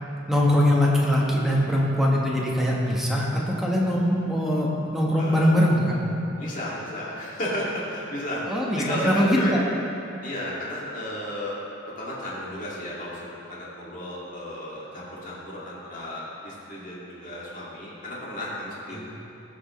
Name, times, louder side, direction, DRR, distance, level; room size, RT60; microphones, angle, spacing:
voice 1, 0.3-5.9 8.5-9.6, equal, ahead, -4 dB, 1.2 m, -22 dB
voice 2, 6.4-9.5 10.2-11.6 11.9-19.0, left 1 dB, 40° left, -7 dB, 2.3 m, -33 dB
16.0 x 6.2 x 3.1 m, 2.8 s
head